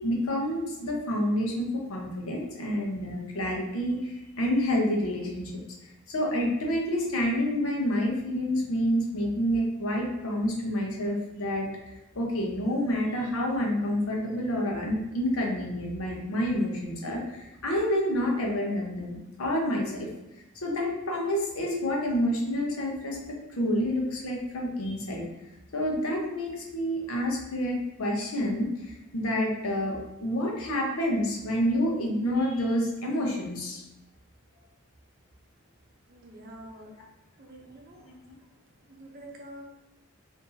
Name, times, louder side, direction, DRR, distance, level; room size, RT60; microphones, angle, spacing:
voice 1, 0.0-5.5 6.1-20.1 20.6-25.2 25.7-33.8, equal, 80° left, -1 dB, 0.8 m, -28 dB
voice 2, 36.1-36.9 37.4-38.1 38.9-39.6, right 1 dB, 45° right, 0 dB, 0.6 m, -46 dB
2.7 x 2.6 x 3.8 m, 0.93 s
head